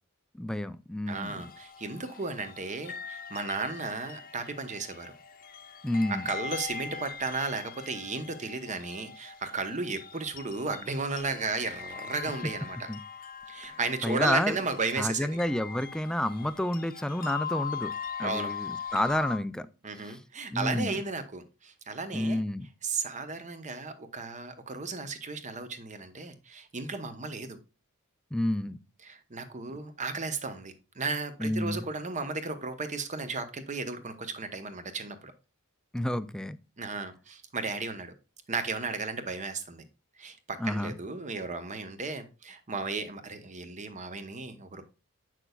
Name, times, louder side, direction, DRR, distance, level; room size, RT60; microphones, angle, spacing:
voice 1, 0.4-1.4 5.8-6.3 12.9-13.0 14.0-14.6 15.0-17.9 18.2-19.7 20.0-20.2 20.5-21.0 22.1-22.7 28.3-28.8 31.4-31.8 35.9-36.6 40.6-40.9, left 1 dB, 5° left, 0.3 m, -30 dB
voice 2, 1.1-5.1 6.1-12.9 13.5-15.4 18.2-18.5 19.8-22.4 22.8-27.6 29.0-35.3 36.8-38.1 38.5-39.8 40.2-44.8, right 3 dB, 35° right, 0.9 m, -34 dB
sound 1, 1.4-19.4, left 6 dB, 40° left, 0.8 m, -41 dB
7.9 x 6.1 x 2.3 m
head